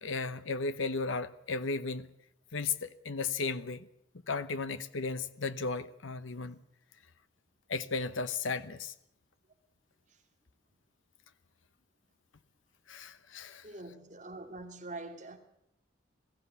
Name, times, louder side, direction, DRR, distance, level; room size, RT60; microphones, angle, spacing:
voice 1, 0.0-2.1 2.5-3.9 4.3-6.6 7.7-8.9 12.9-13.6, left 4 dB, 90° left, 0.9 m, -35 dB
voice 2, 13.6-15.4, right 2 dB, 40° right, 2.5 m, -44 dB
21.0 x 15.0 x 8.3 m
head